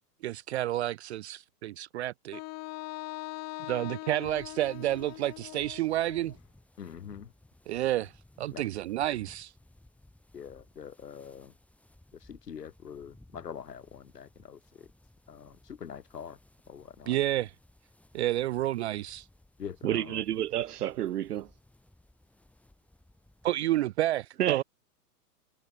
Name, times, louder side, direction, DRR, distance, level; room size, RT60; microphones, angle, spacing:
voice 1, 0.2-2.4 3.7-6.4 7.7-8.1 8.4-9.5 17.1-17.5 18.1-19.3 23.4-24.6, right 14 dB, 45° right, 0.4 m, -30 dB
Wind instrument woodwind instrument, 2.3-6.4, left 20 dB, 35° left, 3.6 m, -41 dB
sound 1, 4.2-23.9, left 1 dB, 5° left, 4.9 m, -60 dB
voice 2, 6.8-7.3 8.5-8.7 10.3-11.5 12.1-14.9 15.3-16.4 16.7-17.2 19.6-20.2, left 7 dB, 90° left, 3.2 m, -44 dB
voice 3, 19.8-21.5 24.4-24.6, right 12 dB, 75° right, 1.3 m, -30 dB
hypercardioid pair, 130°, 47 cm